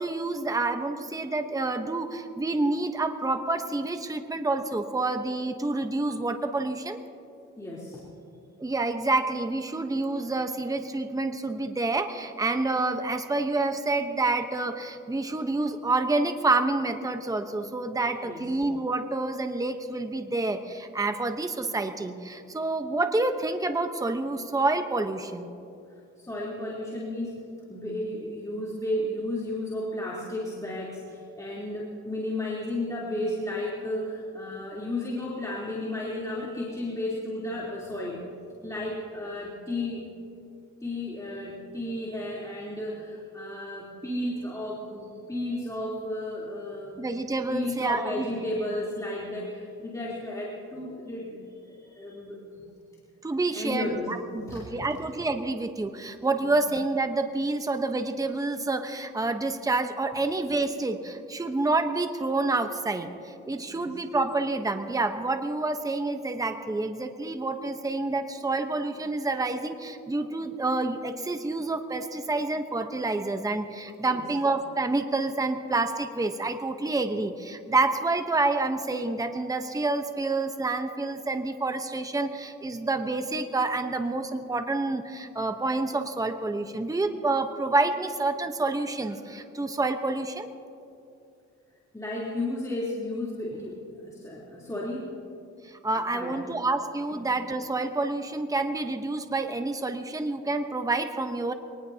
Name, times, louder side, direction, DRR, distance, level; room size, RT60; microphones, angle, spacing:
voice 1, 0.0-7.0 8.6-25.5 47.0-48.3 53.2-90.5 95.6-101.5, right 2 dB, 10° right, 7 dB, 1.0 m, -28 dB
voice 2, 7.6-8.1 18.2-18.4 26.2-38.2 38.6-40.1 40.8-47.0 47.5-52.7 53.3-54.6 56.4-56.5 63.7-63.9 74.0-74.3 91.9-95.2 95.9-96.4 97.1-97.3, left 1 dB, 10° left, -6 dB, 3.5 m, -33 dB
24.5 x 19.5 x 2.9 m, 2.6 s
cardioid pair, 90°, 30 cm